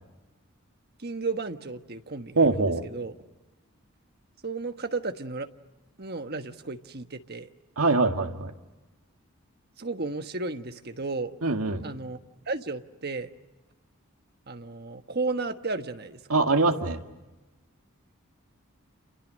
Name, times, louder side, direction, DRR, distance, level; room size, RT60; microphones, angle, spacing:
voice 1, 1.0-3.1 4.4-5.5 6.0-7.5 9.8-11.3 11.8-12.2 12.5-13.3 14.5-16.4, right 3 dB, 45° right, 8 dB, 1.3 m, -33 dB
voice 2, 2.4-2.8 7.8-8.5 11.4-11.8 16.3-17.0, right 3 dB, 80° right, 5 dB, 2.1 m, -23 dB
30.0 x 28.5 x 6.4 m, 1.1 s
head